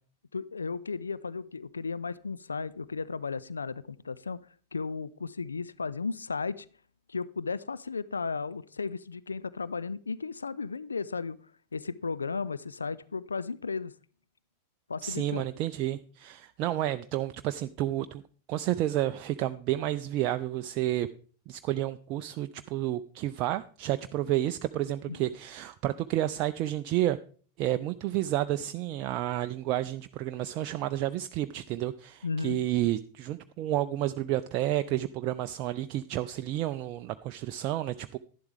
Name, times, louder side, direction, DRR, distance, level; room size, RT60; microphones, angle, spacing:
voice 1, 0.3-6.7 7.1-11.4 11.7-13.9 14.9-15.5 25.1-25.3 32.2-32.6, left 4 dB, 75° left, 18 dB, 0.4 m, -35 dB
voice 2, 15.0-18.2 18.5-21.1 21.5-27.2 27.6-38.2, right 14 dB, 40° right, 9 dB, 0.4 m, -30 dB
11.5 x 11.0 x 3.4 m, 0.42 s
figure-of-eight pair, 90°, 0 cm